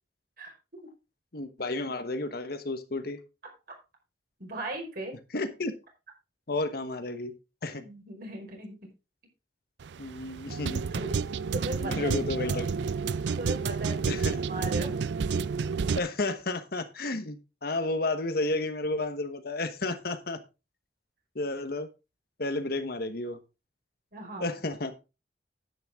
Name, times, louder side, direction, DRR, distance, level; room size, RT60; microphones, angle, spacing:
voice 1, 1.3-3.2 5.3-5.7 6.5-7.3 7.6-7.8 10.0-10.9 11.8-12.7 14.1-14.4 15.9-20.4 21.3-21.9 22.4-23.4 24.4-24.9, left 2 dB, 60° left, 9 dB, 1.2 m, -32 dB
voice 2, 4.4-5.1 7.7-8.7 10.9-11.1 11.5-12.7 13.4-15.1 24.1-24.6, right 1 dB, 55° right, 1 dB, 5.2 m, -38 dB
sound 1, 9.8-16.0, right 5 dB, 75° right, 0.4 m, -30 dB
10.5 x 9.2 x 3.6 m, 0.28 s
head